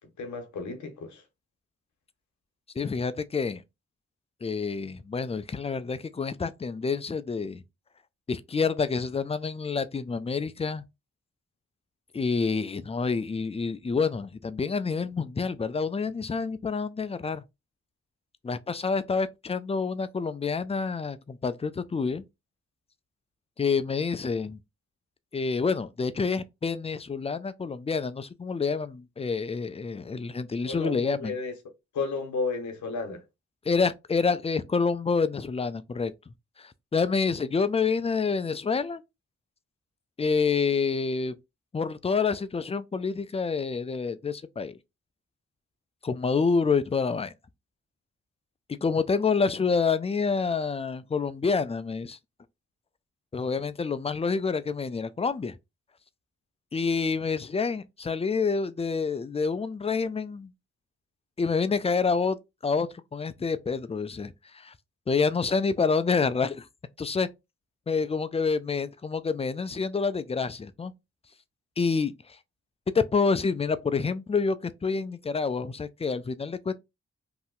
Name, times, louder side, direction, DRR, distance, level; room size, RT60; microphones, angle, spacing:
voice 1, 0.2-1.2 30.6-31.5 31.9-33.2, left 4 dB, 75° left, 0.9 m, -32 dB
voice 2, 2.8-3.6 4.4-7.6 8.3-10.8 12.1-17.4 18.4-22.2 23.6-24.6 25.3-31.4 33.7-36.1 36.6-39.0 40.2-41.3 41.7-44.8 46.0-47.3 48.8-52.2 53.3-55.6 56.7-60.5 61.4-62.4 62.6-64.7 65.1-66.7 67.0-67.3 67.9-70.9 71.8-72.1 72.9-76.7, left 5 dB, 20° left, 0.4 m, -28 dB
2.7 x 2.0 x 3.7 m
supercardioid pair, 45°, 29 cm